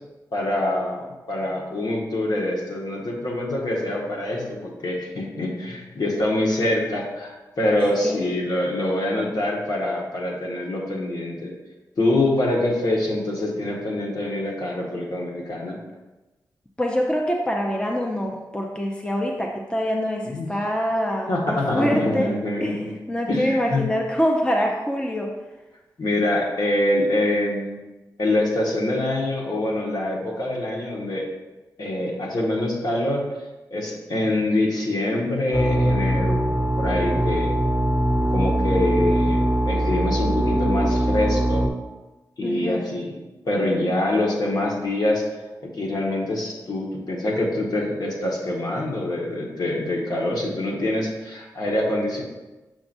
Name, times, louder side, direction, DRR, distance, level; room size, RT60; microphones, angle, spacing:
voice 1, 0.3-11.5 12.0-15.8 20.2-20.5 21.3-22.9 23.3-23.8 26.0-27.8 28.2-31.3 31.8-33.2 33.7-36.4 36.8-37.5 38.3-41.7 42.4-43.1 43.5-45.2 45.6-52.2, left 1 dB, 60° left, -3 dB, 1.6 m, -25 dB
voice 2, 16.8-22.3 22.6-22.8 23.1-25.3 42.4-42.8, equal, 15° left, 0 dB, 0.8 m, -25 dB
sound 1, 35.5-41.7, right 1 dB, 20° right, 1.2 m, -21 dB
7.0 x 5.9 x 2.7 m, 1.1 s
cardioid pair, 55°, 8 cm